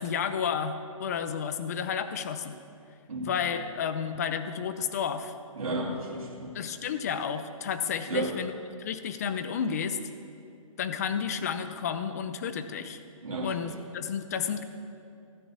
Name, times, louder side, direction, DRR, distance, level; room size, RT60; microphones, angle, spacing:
voice 1, 0.0-2.6 3.3-5.3 6.5-8.5 8.8-10.0 10.8-13.0 13.4-14.6, left 7 dB, 30° left, 10 dB, 0.6 m, -31 dB
voice 2, 5.6-6.6 8.1-8.4 13.2-13.7, right 2 dB, 80° right, -4 dB, 2.5 m, -33 dB
14.5 x 6.9 x 7.6 m, 2.5 s
hypercardioid pair, 160°, 18 cm